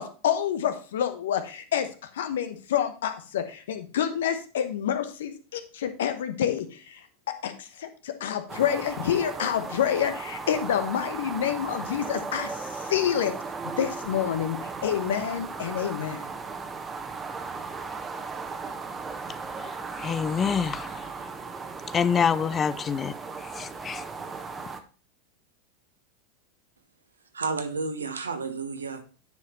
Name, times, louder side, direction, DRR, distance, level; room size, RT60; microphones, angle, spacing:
voice 1, 0.0-7.1 7.4-13.3 13.6-16.3, left 9 dB, 70° left, 1.1 m, -28 dB
sound 1, 8.5-24.8, right 4 dB, 20° right, 1.1 m, -36 dB
voice 2, 20.0-20.9 21.9-23.1 23.6-24.0, left 7 dB, 25° left, 0.5 m, -26 dB
voice 3, 27.3-29.0, right 4 dB, 85° right, 1.1 m, -31 dB
9.5 x 4.8 x 4.3 m
hypercardioid pair, 90°, 0 cm